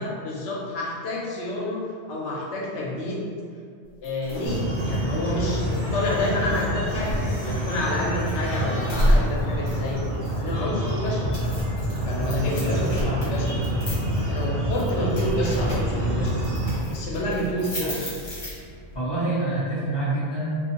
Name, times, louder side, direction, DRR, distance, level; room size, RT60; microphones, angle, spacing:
voice 1, 0.0-3.2 4.0-10.0 10.4-11.3 12.0-13.6 14.3-16.4 16.9-18.2, left 1 dB, 85° left, -4 dB, 0.9 m, -29 dB
sound 1, 4.0-19.0, equal, 50° left, 1.0 m, -32 dB
sound 2, 4.5-16.8, equal, 55° right, 0.6 m, -27 dB
voice 2, 12.2-13.2 17.8-17.9 18.9-20.5, right 2 dB, 25° left, -10 dB, 0.6 m, -27 dB
2.5 x 2.3 x 2.8 m, 2.2 s
omnidirectional pair, 1.1 m